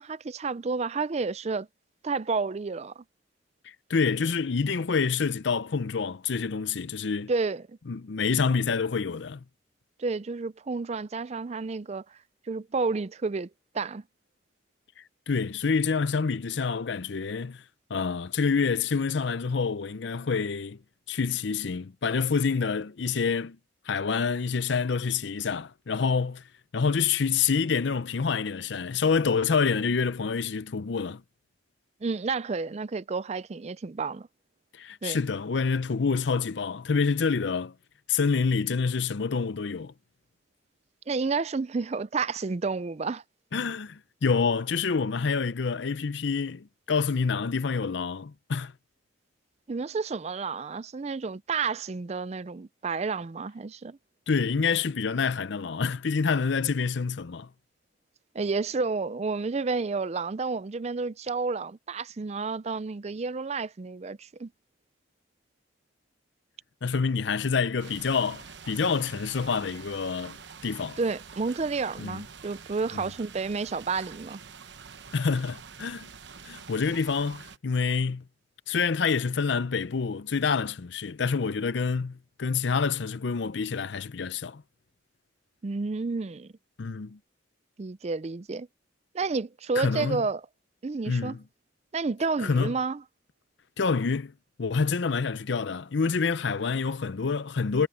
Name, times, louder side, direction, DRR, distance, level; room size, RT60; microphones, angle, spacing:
voice 1, 0.0-1.7 2.0-3.0 7.3-7.8 10.0-12.2 12.5-13.5 13.7-14.0 32.0-34.3 35.0-35.2 41.1-43.2 49.7-54.0 58.3-64.5 71.0-74.4 85.6-86.5 87.8-88.7 89.1-90.5 90.8-91.4 91.9-93.0, right 4 dB, 35° right, 0.4 m, -30 dB
voice 2, 3.6-7.3 7.9-9.4 15.3-17.6 17.9-20.8 21.1-23.6 23.9-26.4 26.7-31.2 34.7-37.7 38.1-39.9 43.5-48.7 54.3-57.5 66.8-70.4 70.6-71.0 72.0-72.2 75.1-76.1 76.5-78.2 78.7-84.6 86.8-87.2 89.8-90.2 91.1-91.4 92.4-92.7 93.8-94.3 94.6-97.9, left 5 dB, 65° left, 0.6 m, -27 dB
sound 1, 67.8-77.6, right 6 dB, 60° right, 1.0 m, -46 dB
head